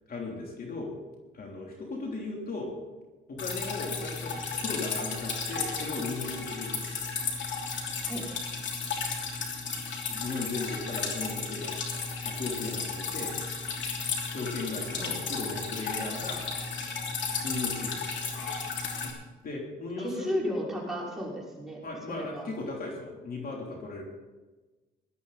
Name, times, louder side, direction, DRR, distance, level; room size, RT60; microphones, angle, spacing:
voice 1, 0.1-0.9 1.3-2.7 3.3-7.0 10.1-11.8 12.2-13.4 14.2-16.4 17.4-18.2 19.4-20.3 21.8-24.0, left 3 dB, 50° left, -1 dB, 3.3 m, -37 dB
Drip, 3.4-19.1, left 5 dB, 65° left, 3.0 m, -34 dB
voice 2, 20.0-22.5, left 1 dB, ahead, -5 dB, 5.7 m, -34 dB
17.5 x 12.5 x 4.1 m, 1.2 s
cardioid pair, 90°, 20 cm